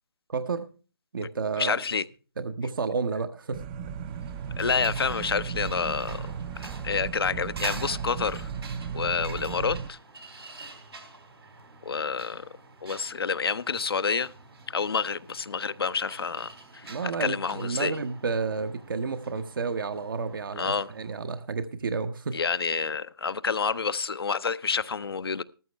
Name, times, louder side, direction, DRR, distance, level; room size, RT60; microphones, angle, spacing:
voice 1, 0.3-0.7 1.1-1.8 2.4-3.6 16.9-22.4, right 4 dB, 60° right, 1.1 m, -31 dB
voice 2, 1.6-2.0 4.6-6.3 6.8-8.5 8.9-10.0 11.8-12.5 12.8-14.3 14.7-17.9 20.6-20.9 22.3-25.4, left 5 dB, 75° left, 0.7 m, -28 dB
sound 1, 3.5-9.9, right 7 dB, 20° right, 0.6 m, -35 dB
sound 2, 3.9-21.3, right 3 dB, 80° right, 3.8 m, -47 dB
13.5 x 13.5 x 3.3 m
figure-of-eight pair, 150°, 13 cm